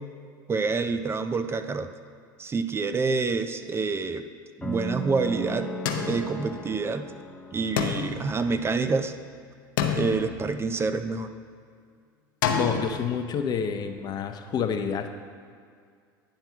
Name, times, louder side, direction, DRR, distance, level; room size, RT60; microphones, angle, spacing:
voice 1, 0.5-1.9 2.4-4.3 4.6-5.7 6.0-7.1 7.5-9.1 9.9-11.3, right 4 dB, 20° right, 9 dB, 0.5 m, -27 dB
sound 1, 4.6-8.7, right 1 dB, 5° left, 0.8 m, -36 dB
sound 2, 5.9-7.0 7.8-9.2 9.8-11.1 12.4-13.0, left 7 dB, 70° left, 0.8 m, -30 dB
voice 2, 12.6-15.1, left 7 dB, 35° left, 7 dB, 0.7 m, -28 dB
9.3 x 4.5 x 5.8 m, 2.1 s
hypercardioid pair, 85°, 11 cm